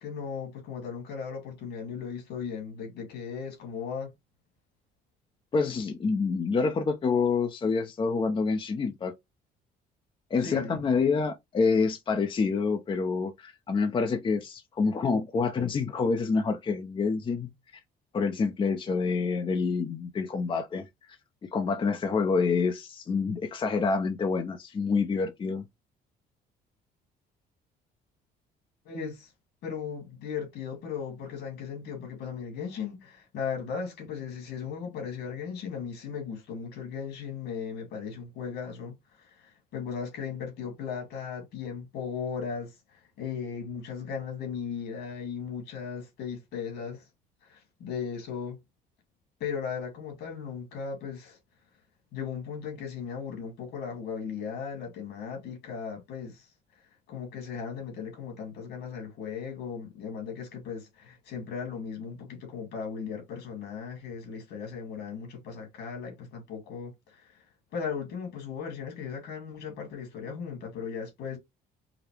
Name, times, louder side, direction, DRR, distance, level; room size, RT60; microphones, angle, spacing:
voice 1, 0.0-4.1 10.4-11.0 28.8-29.3 29.6-47.0 47.4-48.6 49.4-51.4 52.1-56.5 57.1-67.2 67.7-71.4, left 6 dB, 75° left, 2.5 m, -37 dB
voice 2, 5.5-9.1 10.3-17.5 18.1-20.9 21.4-25.6, left 4 dB, 30° left, 0.6 m, -27 dB
4.9 x 2.1 x 3.2 m
cardioid pair, 110°, 17 cm